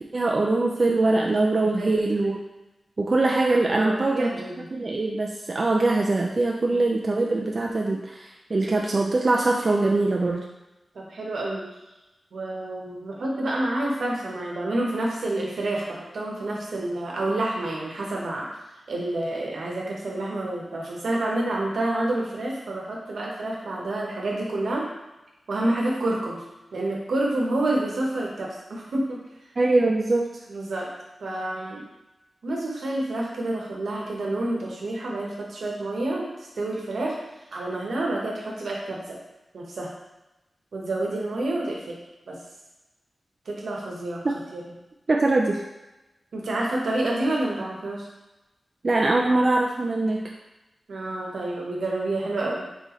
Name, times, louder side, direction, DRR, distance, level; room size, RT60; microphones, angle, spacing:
voice 1, 0.1-2.4 3.0-4.3 4.7-10.4 29.6-30.3 45.1-45.6 48.8-50.3, right 2 dB, 40° right, -1 dB, 0.4 m, -22 dB
voice 2, 3.8-4.7 6.7-6.8 10.9-11.7 12.3-18.5 18.9-24.9 25.5-26.4 26.7-29.2 30.5-30.9 31.2-31.8 32.4-36.3 36.5-37.2 37.5-39.2 39.5-39.9 40.7-42.0 42.3-42.4 43.4-44.6 46.3-48.1 50.9-52.6, right 1 dB, 80° right, -3 dB, 1.0 m, -28 dB
3.9 x 3.9 x 3.1 m, 1.0 s
wide cardioid pair, 135°, 0 cm